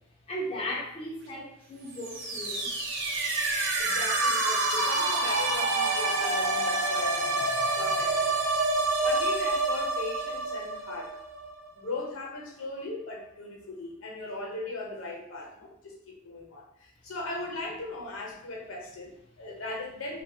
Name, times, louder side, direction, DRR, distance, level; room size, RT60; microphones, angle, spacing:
voice 1, 0.3-2.7, equal, 30° left, -3 dB, 0.4 m, -36 dB
sound 1, 1.9-11.7, right 2 dB, 65° right, 0.7 m, -27 dB
voice 2, 3.8-7.4 7.8-8.4 9.0-11.1 11.7-20.2, left 2 dB, 75° left, -1 dB, 0.8 m, -38 dB
2.7 x 2.3 x 2.7 m, 0.75 s
head